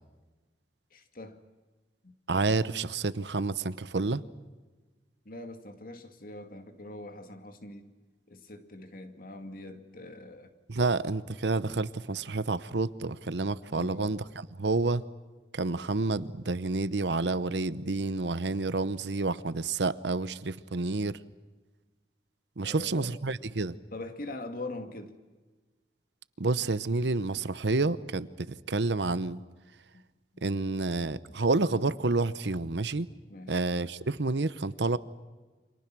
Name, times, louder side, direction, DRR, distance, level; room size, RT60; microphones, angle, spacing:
voice 1, 0.9-1.4 2.0-2.1 5.2-7.9 8.3-10.5 13.7-14.2 22.6-23.2 23.9-25.1 29.9-30.0 30.3-30.4 33.3-33.6, left 2 dB, 55° left, 2.4 m, -43 dB
voice 2, 2.3-4.2 10.7-14.2 14.6-15.0 15.5-21.2 22.6-23.8 26.4-29.4 30.4-33.1 33.5-35.0, right 3 dB, 80° right, 0.9 m, -29 dB
29.5 x 26.0 x 6.2 m
head